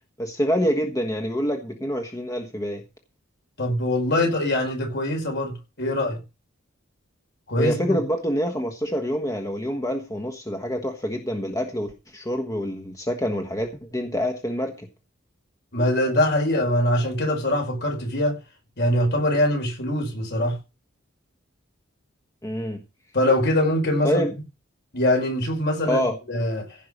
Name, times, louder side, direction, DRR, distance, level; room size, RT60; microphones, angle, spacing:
voice 1, 0.2-2.8 7.6-14.9 22.4-22.8 24.0-24.3 25.8-26.2, equal, 15° left, 1.4 m, -26 dB
voice 2, 3.6-6.2 7.5-8.0 15.7-18.4 18.8-20.6 23.1-24.3 24.9-26.7, left 1 dB, 55° left, 5.2 m, -23 dB
16.0 x 5.7 x 6.4 m
head